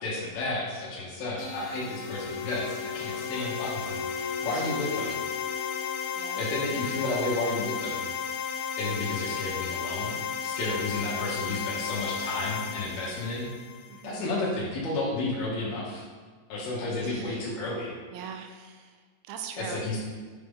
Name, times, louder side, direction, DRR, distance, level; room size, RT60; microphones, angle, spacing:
voice 1, 0.0-5.1 6.4-8.0 8.8-13.5 14.0-16.0 16.5-17.9 19.6-20.0, left 2 dB, 70° left, -6 dB, 2.6 m, -32 dB
sound 1, 1.4-14.1, left 7 dB, 85° left, 2.2 m, -34 dB
Wind instrument woodwind instrument, 2.0-6.4, left 9 dB, 55° right, 1.0 m, -39 dB
voice 2, 4.5-5.2 6.2-6.4 10.8-11.0 13.9-14.3 17.0-17.5 18.1-19.9, right 7 dB, 85° right, 5 dB, 2.7 m, -43 dB
6.5 x 4.4 x 3.5 m, 1.5 s
omnidirectional pair, 5.0 m